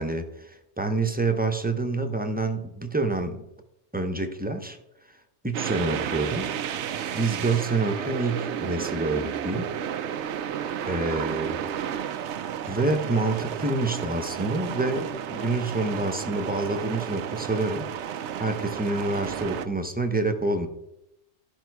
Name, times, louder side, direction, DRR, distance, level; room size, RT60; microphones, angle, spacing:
voice 1, 0.0-3.5 3.9-4.8 5.4-6.5 7.1-9.7 10.9-11.7 12.6-17.9 18.4-20.7, right 2 dB, 10° right, 5 dB, 0.8 m, -27 dB
sound 1, 5.5-19.7, right 9 dB, 85° right, 0.9 m, -32 dB
13.0 x 5.5 x 4.7 m, 0.86 s
omnidirectional pair, 1.2 m